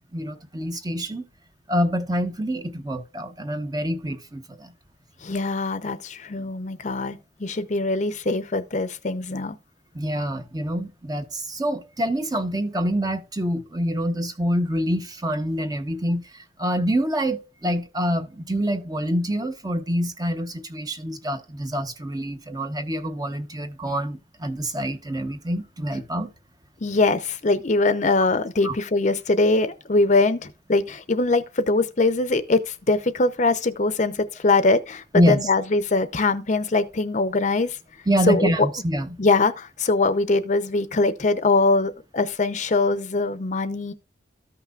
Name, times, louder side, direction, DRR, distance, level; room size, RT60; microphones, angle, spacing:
voice 1, 0.1-1.2 1.7-4.7 9.9-26.3 28.6-28.8 35.1-35.4 38.1-39.1, equal, 20° right, 0.9 m, -26 dB
voice 2, 5.2-9.6 26.8-37.8 38.3-38.7 39.2-43.9, left 3 dB, 40° left, 0.7 m, -22 dB
14.0 x 5.8 x 2.4 m
head